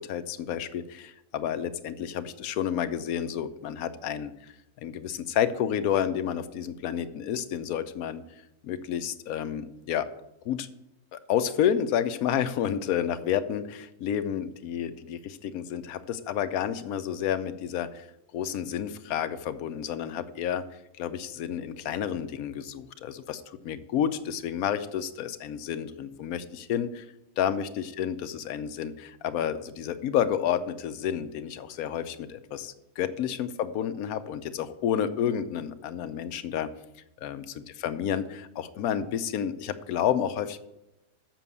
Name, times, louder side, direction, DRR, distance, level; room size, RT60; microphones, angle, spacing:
voice 1, 0.0-4.5 4.8-8.2 8.6-10.1 10.4-10.7 11.1-18.1 18.3-20.6 21.0-27.1 27.4-36.7 37.2-40.6, left 9 dB, 85° left, 11 dB, 1.1 m, -30 dB
7.5 x 6.1 x 6.9 m, 0.91 s
omnidirectional pair, 1.5 m